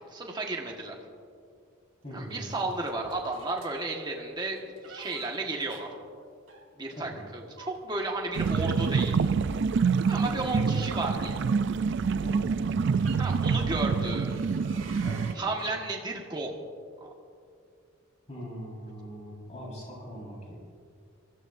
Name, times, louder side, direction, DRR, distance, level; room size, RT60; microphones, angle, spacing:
voice 1, 0.1-1.0 2.1-5.9 6.8-9.2 10.1-11.4 13.2-14.4 15.3-16.6 17.0-17.1, right 2 dB, 20° right, 0 dB, 1.5 m, -33 dB
voice 2, 2.0-2.6 6.9-7.2 10.2-10.6 12.2-12.5 15.0-15.5 18.3-20.6, equal, 35° left, -4 dB, 4.5 m, -41 dB
sound 1, 2.3-3.8 4.6-7.0 7.5-10.8 11.7-11.8 12.5-13.2 13.9-15.4, right 6 dB, 80° right, 1.7 m, -51 dB
sound 2, 8.4-15.3, right 5 dB, 60° right, 0.4 m, -26 dB
24.0 x 15.0 x 2.6 m, 2.3 s
head